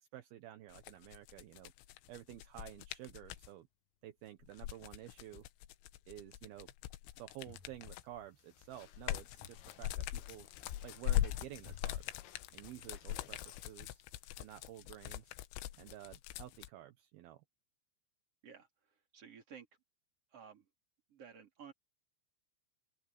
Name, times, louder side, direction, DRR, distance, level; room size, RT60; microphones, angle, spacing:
voice 1, 0.0-1.7 2.1-3.7 4.0-5.4 6.1-6.7 7.2-12.2 12.5-14.0 14.4-15.4 15.7-17.4, right 13 dB, 70° right, 2.4 m, -52 dB
sound 1, 0.7-3.5 4.4-8.2 8.6-16.7, left 14 dB, 85° left, 3.6 m, -41 dB
Thump thud, 7.5-8.0 9.4-9.9 11.7-12.3, left 4 dB, 40° left, 6.0 m, -59 dB
sound 2, 7.6-15.0, left 11 dB, 65° left, 2.8 m, -61 dB
voice 2, 19.1-19.7 20.3-20.7 21.1-21.7, right 7 dB, 30° right, 4.3 m, -53 dB
open air
omnidirectional pair, 5.7 m